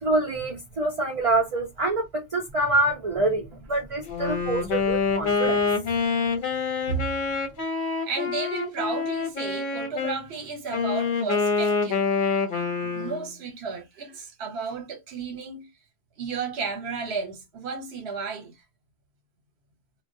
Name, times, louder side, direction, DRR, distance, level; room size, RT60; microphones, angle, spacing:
voice 1, 0.0-5.6, right 2 dB, 40° right, 0.5 m, -26 dB
Wind instrument woodwind instrument, 4.0-10.2 10.7-13.3, left 5 dB, 55° left, 0.8 m, -26 dB
voice 2, 8.0-12.1 12.8-15.7 16.2-18.5, right 5 dB, 75° right, 1.0 m, -33 dB
2.2 x 2.1 x 2.5 m
omnidirectional pair, 1.1 m